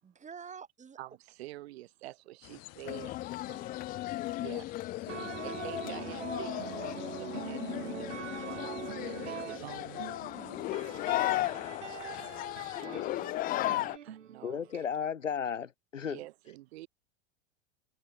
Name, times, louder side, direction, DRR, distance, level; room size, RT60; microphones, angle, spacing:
voice 1, 0.0-1.0 3.5-3.8 10.3-10.8 12.7-13.9, right 6 dB, 20° right, 7.5 m, -51 dB
voice 2, 1.0-3.1 4.4-4.7 5.4-8.6 9.0-10.1 12.8-13.0 14.0-14.7 16.0-16.9, right 17 dB, 55° right, 4.3 m, -47 dB
sound 1, 2.4-12.8, left 22 dB, 40° left, 4.2 m, -52 dB
sound 2, 2.8-14.0, left 16 dB, 25° left, 0.6 m, -36 dB
sound 3, 5.1-14.9, right 9 dB, 70° right, 1.2 m, -43 dB
voice 3, 14.4-16.2, left 7 dB, 75° left, 1.7 m, -34 dB
figure-of-eight pair, 90°, 38 cm